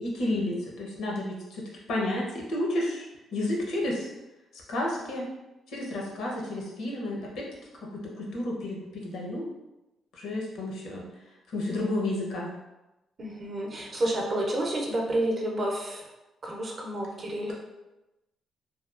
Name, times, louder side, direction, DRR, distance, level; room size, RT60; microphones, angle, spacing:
voice 1, 0.0-1.6 1.9-4.1 4.5-5.3 5.7-7.5 7.8-9.4 10.1-11.1 11.5-12.5, left 1 dB, 75° left, -2 dB, 0.7 m, -31 dB
voice 2, 13.2-16.0 16.4-17.5, right 1 dB, 35° right, 0 dB, 0.5 m, -30 dB
2.8 x 2.2 x 2.4 m, 0.98 s
cardioid pair, 115°, 0 cm